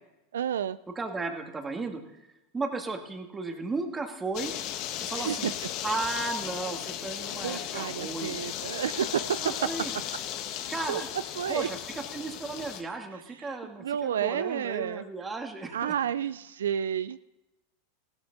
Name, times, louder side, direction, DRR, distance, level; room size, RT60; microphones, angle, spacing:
voice 1, 0.3-0.8 5.2-5.5 7.4-9.5 10.5-11.0 11.4-11.7 13.4-13.5 13.8-15.0 15.7-17.2, right 9 dB, 85° right, 16 dB, 0.4 m, -31 dB
voice 2, 1.0-2.3 2.5-4.5 5.0-5.5 5.8-8.3 9.4-9.9 10.7-11.1 11.5-15.9, right 3 dB, 15° right, 4 dB, 2.1 m, -35 dB
sound 1, 4.3-12.8, left 10 dB, 50° left, 1.3 m, -36 dB
15.5 x 13.0 x 3.9 m, 0.97 s
hypercardioid pair, 105°, 0 cm